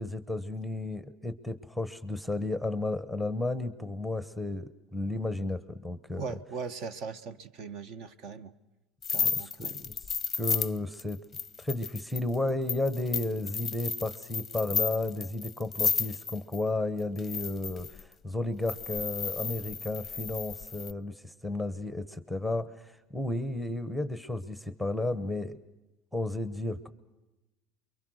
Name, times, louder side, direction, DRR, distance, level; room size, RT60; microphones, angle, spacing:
voice 1, 0.0-6.2 9.2-9.9 10.4-11.2 11.6-25.6 26.1-26.9, left 2 dB, ahead, 12 dB, 1.0 m, -33 dB
voice 2, 6.2-8.5 9.1-9.8, right 5 dB, 50° right, 13 dB, 1.3 m, -40 dB
sound 1, 9.0-16.6 17.2-18.0 18.7-20.9, left 6 dB, 20° left, 0.8 m, -33 dB
29.5 x 23.5 x 6.4 m, 0.99 s
cardioid pair, 155°, 0 cm